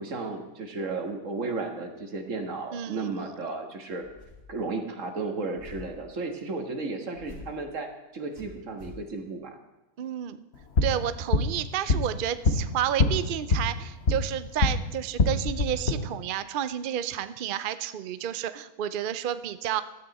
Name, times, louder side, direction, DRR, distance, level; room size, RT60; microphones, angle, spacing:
voice 1, 0.0-4.1 4.5-9.6, right 3 dB, 55° right, 4 dB, 1.9 m, -34 dB
voice 2, 2.7-3.1 10.0-10.4 10.8-19.8, right 10 dB, 75° right, 13 dB, 0.4 m, -31 dB
sound 1, 4.0-4.6 5.6-6.0 7.1-7.6 8.3-9.1, left 3 dB, 15° right, 5.6 m, -46 dB
sound 2, 10.5-14.8 15.1-15.9, left 3 dB, 45° left, 1.4 m, -25 dB
15.5 x 13.0 x 4.2 m, 1.0 s
omnidirectional pair, 1.6 m